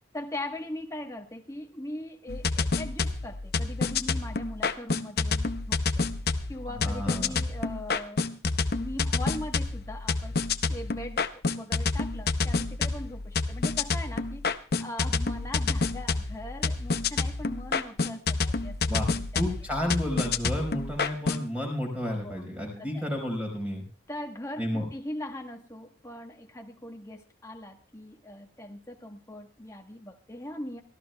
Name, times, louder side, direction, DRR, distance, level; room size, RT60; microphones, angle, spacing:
voice 1, 0.1-6.1 6.5-8.3 8.7-10.4 10.7-14.5 14.8-19.4 22.2-22.5 22.8-23.1 24.1-30.8, left 1 dB, 15° left, 3 dB, 1.3 m, -40 dB
sound 1, 2.3-21.5, left 4 dB, 55° left, 0.7 m, -29 dB
voice 2, 6.8-7.4 18.9-19.1 19.3-23.8 24.6-24.8, left 1 dB, 5° right, 1 dB, 4.9 m, -31 dB
24.0 x 14.0 x 2.3 m, 0.36 s
head